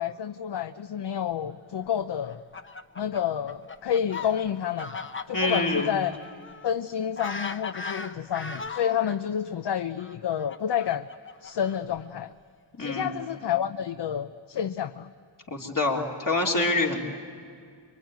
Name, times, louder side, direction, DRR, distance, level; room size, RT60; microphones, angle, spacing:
voice 1, 0.0-2.4 3.0-6.2 6.6-11.1 11.4-12.3 12.8-15.1, left 9 dB, 60° left, 11 dB, 0.7 m, -29 dB
Fowl, 2.2-9.2 10.0-12.0, left 4 dB, 25° left, 0.9 m, -38 dB
voice 2, 5.3-5.9 12.8-13.1 15.5-17.0, left 2 dB, 45° left, -1 dB, 3.4 m, -26 dB
25.0 x 24.5 x 9.4 m, 2.3 s
wide cardioid pair, 155°, 46 cm